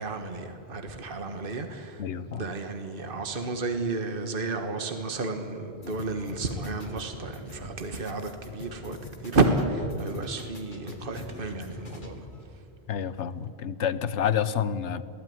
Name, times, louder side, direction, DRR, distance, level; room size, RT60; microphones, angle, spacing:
voice 1, 0.0-12.3 12.5-12.6, right 3 dB, 50° right, 6 dB, 1.7 m, -31 dB
voice 2, 2.0-2.5 12.9-15.0, left 8 dB, 85° left, 14 dB, 1.1 m, -29 dB
sound 1, 5.8-12.4, left 2 dB, 45° left, 2.2 m, -43 dB
21.5 x 16.5 x 9.5 m, 2.5 s
omnidirectional pair, 1.2 m